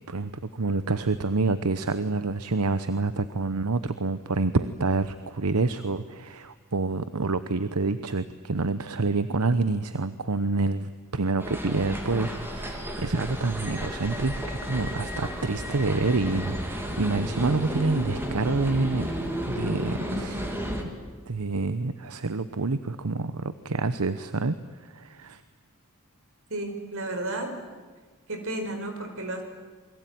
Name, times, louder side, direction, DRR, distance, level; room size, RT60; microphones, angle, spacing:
voice 1, 0.1-19.1 19.4-20.9 21.3-24.6 24.8-25.4, right 3 dB, 80° right, 12 dB, 1.0 m, -27 dB
sound 1, 11.4-20.8, equal, 10° right, 3.3 m, -32 dB
voice 2, 26.5-27.5 28.3-29.4, right 2 dB, 65° right, 6 dB, 4.9 m, -32 dB
28.0 x 22.5 x 9.4 m, 1.4 s
head